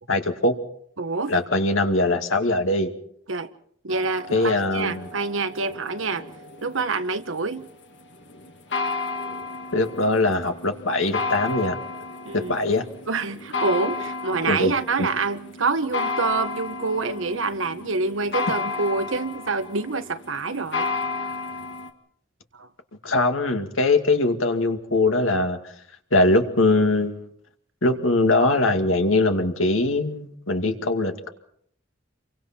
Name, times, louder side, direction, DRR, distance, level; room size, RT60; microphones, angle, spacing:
voice 1, 0.1-0.5 1.3-2.9 4.3-5.1 9.7-11.8 12.3-12.8 14.4-14.7 15.0-15.1 23.0-25.6 26.1-27.3 27.8-31.3, left 2 dB, 90° left, 2.3 m, -21 dB
voice 2, 1.0-1.3 3.3-3.5 3.8-6.2 6.6-7.7 12.2-12.7 13.1-20.9 22.5-22.7, right 3 dB, 80° right, 1.2 m, -27 dB
sound 1, 3.9-21.9, left 3 dB, 60° left, 2.2 m, -33 dB
28.5 x 24.0 x 4.4 m
head